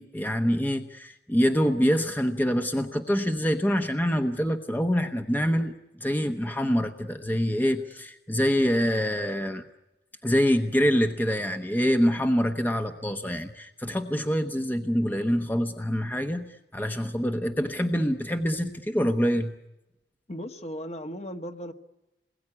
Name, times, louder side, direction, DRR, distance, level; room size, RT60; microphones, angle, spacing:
voice 1, 0.0-5.7 6.0-9.6 10.2-19.5, equal, 10° left, 6 dB, 0.9 m, -25 dB
voice 2, 20.3-21.7, equal, 35° left, 7 dB, 1.4 m, -36 dB
28.0 x 21.5 x 9.8 m, 0.98 s
head